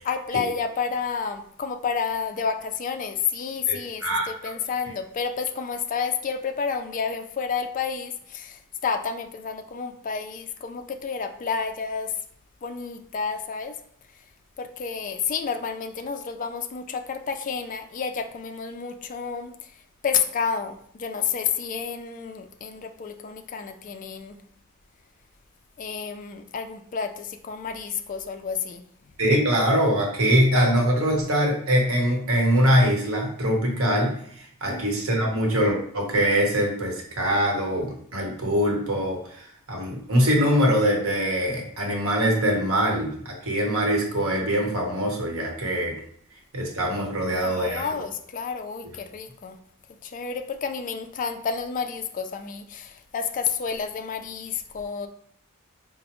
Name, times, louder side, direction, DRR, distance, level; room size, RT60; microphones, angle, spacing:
voice 1, 0.0-12.1 12.6-13.8 14.6-19.7 20.0-24.4 25.8-28.8 34.6-34.8 47.4-49.6 50.0-55.1, left 6 dB, 35° left, 7 dB, 0.3 m, -30 dB
voice 2, 3.7-4.5 29.2-34.2 34.6-45.9 46.5-48.0, equal, 65° right, 0 dB, 1.0 m, -23 dB
4.8 x 2.1 x 2.9 m, 0.64 s
head